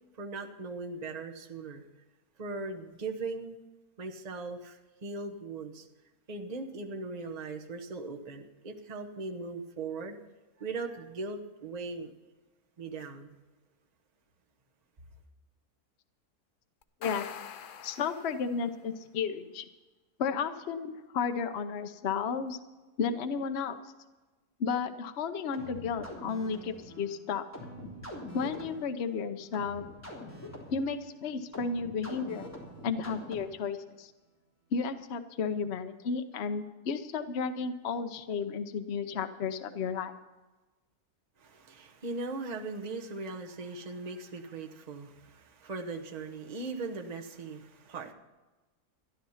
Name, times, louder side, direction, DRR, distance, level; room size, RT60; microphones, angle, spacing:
voice 1, 0.1-1.8 2.4-3.6 4.0-5.9 6.3-10.2 10.6-12.1 12.8-13.4 41.4-48.1, right 3 dB, 30° right, 3 dB, 1.1 m, -39 dB
sound 1, 16.8-18.8, left 7 dB, 75° left, 0.4 m, -44 dB
voice 2, 17.8-19.7 20.2-22.6 23.0-23.8 24.6-27.5 28.3-29.8 30.7-32.5 32.8-34.1 34.7-40.2, left 5 dB, 50° left, 8 dB, 1.0 m, -33 dB
sound 2, 25.5-33.7, left 1 dB, 10° left, 3.5 m, -45 dB
14.0 x 11.0 x 5.7 m, 1.2 s
omnidirectional pair, 1.6 m